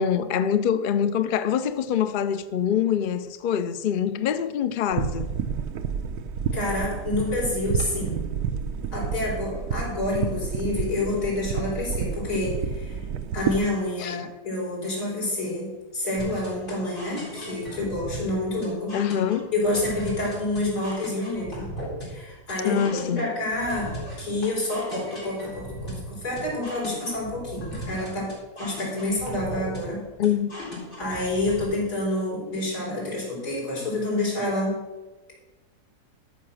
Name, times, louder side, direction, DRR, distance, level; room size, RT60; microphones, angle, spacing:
voice 1, 0.0-5.3 14.0-14.2 18.9-19.5 22.6-23.2 30.2-30.5, left 8 dB, 60° left, 0.5 m, -25 dB
sound 1, 4.9-13.6, right 7 dB, 80° right, 1.2 m, -30 dB
voice 2, 6.5-8.2 8.9-13.0 13.3-19.0 19.5-21.7 22.0-22.8 23.1-30.1 31.0-34.8, left 2 dB, 80° left, 5.0 m, -28 dB
sound 2, 16.2-31.6, equal, 30° left, 4.3 m, -37 dB
13.0 x 5.9 x 6.3 m
omnidirectional pair, 1.7 m